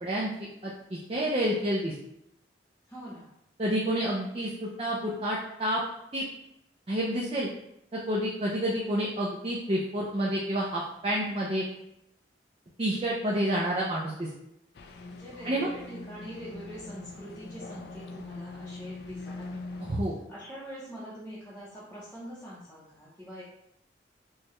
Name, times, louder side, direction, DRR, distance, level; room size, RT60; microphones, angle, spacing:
voice 1, 0.0-1.9 3.6-5.8 6.1-6.2 6.9-7.5 7.9-11.6 12.8-14.3 15.4-15.7 19.8-20.2, right 1 dB, 30° right, -5 dB, 0.4 m, -29 dB
voice 2, 2.9-3.3 15.1-23.4, equal, 10° left, -11 dB, 0.7 m, -44 dB
sound 1, 14.7-20.0, left 3 dB, 60° left, 0.4 m, -43 dB
4.6 x 2.2 x 3.0 m, 0.81 s
head